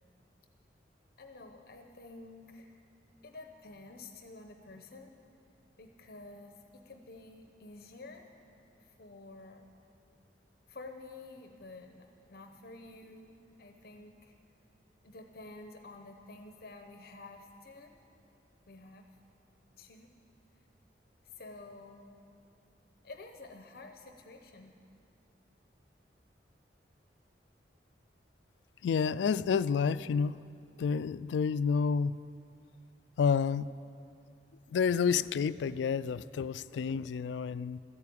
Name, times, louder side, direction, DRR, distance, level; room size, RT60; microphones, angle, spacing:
voice 1, 1.2-2.7 3.2-5.1 5.8-8.3 8.8-9.6 10.7-14.3 15.0-18.0 18.7-19.1 19.8-20.1 21.2-22.2 23.0-24.7, left 2 dB, 60° left, 5 dB, 0.8 m, -50 dB
voice 2, 28.8-30.5 30.8-32.2 33.2-33.7 34.7-37.8, left 6 dB, 85° left, 17 dB, 0.3 m, -29 dB
14.0 x 8.3 x 8.5 m, 2.5 s
head